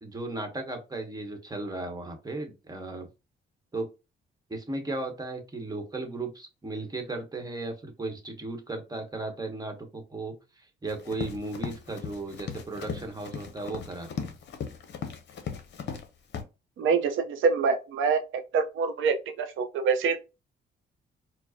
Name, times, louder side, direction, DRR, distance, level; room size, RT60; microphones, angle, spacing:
voice 1, 0.0-3.1 3.7-3.9 4.5-10.3 10.8-14.3, right 2 dB, 20° right, 1.1 m, -36 dB
Run, 10.9-16.1 16.3-16.4, left 6 dB, 65° left, 0.7 m, -37 dB
voice 2, 16.8-18.2 18.5-20.2, right 5 dB, 80° right, 0.8 m, -25 dB
4.4 x 2.1 x 2.8 m
cardioid pair, 90°, 20 cm